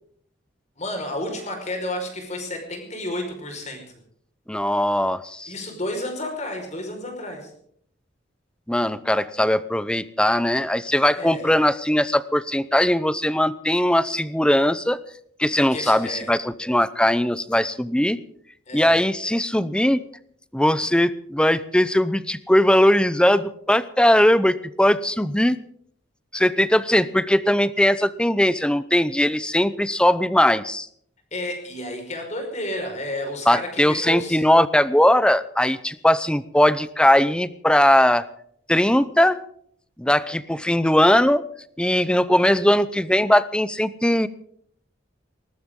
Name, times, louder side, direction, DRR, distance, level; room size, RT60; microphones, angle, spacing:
voice 1, 0.8-3.9 5.5-7.5 11.1-11.6 15.7-16.3 18.7-19.0 31.3-34.4, left 1 dB, 35° left, 4 dB, 5.0 m, -31 dB
voice 2, 4.5-5.5 8.7-15.0 15.4-18.2 18.7-20.1 20.5-25.6 26.3-30.9 33.5-38.2 38.7-39.4 40.0-41.4 41.8-44.3, left 1 dB, 5° left, 16 dB, 0.7 m, -19 dB
20.0 x 19.5 x 3.8 m, 0.64 s
head